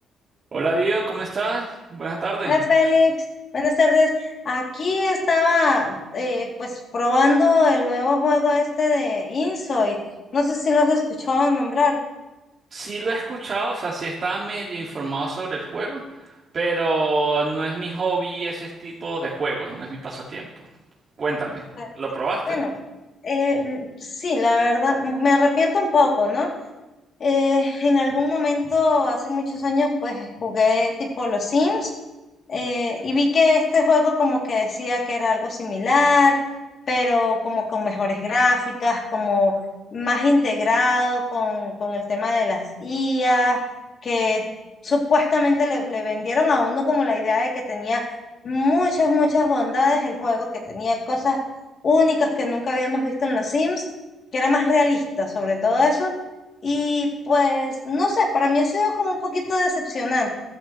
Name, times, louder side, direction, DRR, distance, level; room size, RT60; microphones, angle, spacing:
voice 1, 0.5-2.6 12.7-20.5 21.2-21.6 21.9-22.6, right 3 dB, 45° right, -5 dB, 2.2 m, -26 dB
voice 2, 2.5-3.1 3.5-10.0 10.3-12.0 21.8-21.9 22.5-22.7 23.2-26.5 27.2-31.9 32.5-36.4 36.9-39.5 39.9-43.6 44.0-44.5 44.8-48.1 48.4-51.4 51.8-53.8 54.3-56.1 56.6-60.3, left 3 dB, 50° left, -1 dB, 3.0 m, -21 dB
14.5 x 12.0 x 3.3 m, 1.1 s
cardioid pair, 90°, 0 cm